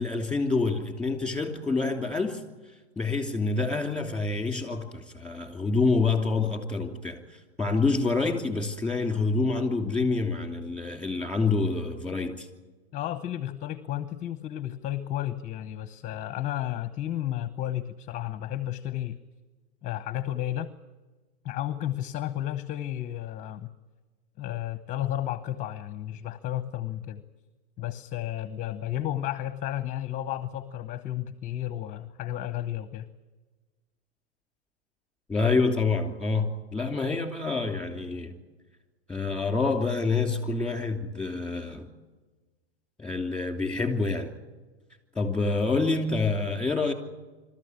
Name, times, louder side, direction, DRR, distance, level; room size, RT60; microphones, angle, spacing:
voice 1, 0.0-2.4 3.0-12.5 35.3-38.4 39.1-41.9 43.0-44.3 45.1-46.9, left 3 dB, 5° left, 3.0 m, -27 dB
voice 2, 12.9-19.2 19.8-20.7 21.4-23.7 24.4-27.2 27.8-33.1, left 12 dB, 25° left, 0.9 m, -32 dB
26.0 x 13.5 x 9.6 m
hypercardioid pair, 135°, 33 cm